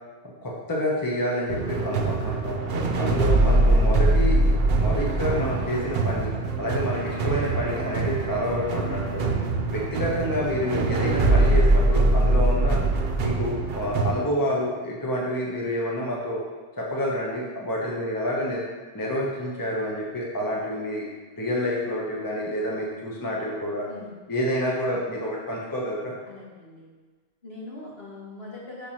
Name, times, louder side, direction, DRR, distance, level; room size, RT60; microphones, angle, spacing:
voice 1, 0.4-2.6 2.9-4.4 4.8-6.3 6.6-9.3 9.7-12.8 13.2-16.4 16.8-18.6 18.9-21.1 21.4-23.9 24.3-26.1, equal, 20° left, -3 dB, 1.0 m, -28 dB
sound 1, 1.5-14.1, right 2 dB, 65° right, 0.9 m, -23 dB
Wind instrument woodwind instrument, 6.9-10.4, left 1 dB, 50° left, 2.1 m, -40 dB
voice 2, 26.3-26.9 27.4-28.9, left 2 dB, 65° left, -4 dB, 1.9 m, -41 dB
5.1 x 4.7 x 5.8 m, 1.4 s
omnidirectional pair, 1.1 m